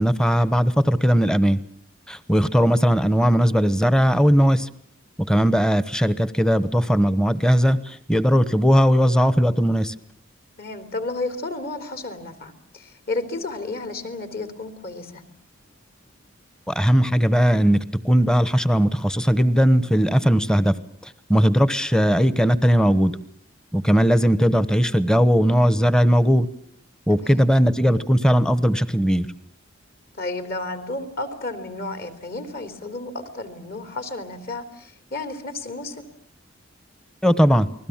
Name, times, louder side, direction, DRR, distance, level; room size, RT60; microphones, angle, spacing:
voice 1, 0.0-1.6 2.1-4.7 5.3-9.9 16.7-20.7 21.0-23.1 23.7-26.5 27.1-29.3 37.2-37.7, equal, 5° left, 14 dB, 1.0 m, -18 dB
voice 2, 10.6-15.2 27.1-27.4 30.2-36.1, left 2 dB, 50° left, 8 dB, 3.5 m, -32 dB
29.5 x 21.0 x 7.4 m, 0.63 s
head